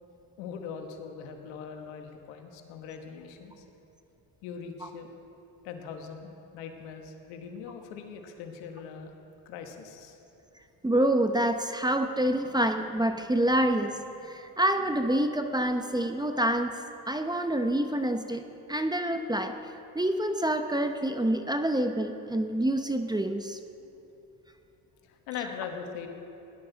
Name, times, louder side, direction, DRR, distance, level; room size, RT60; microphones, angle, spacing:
voice 1, 0.4-3.6 4.4-5.1 5.6-9.1 9.4-10.2 25.0-26.1, left 6 dB, 85° left, 5 dB, 1.4 m, -41 dB
voice 2, 10.8-16.8 17.1-19.6 19.9-23.6, right 1 dB, 10° right, 7 dB, 0.7 m, -27 dB
17.5 x 11.0 x 4.0 m, 2.9 s
supercardioid pair, 75°, 42 cm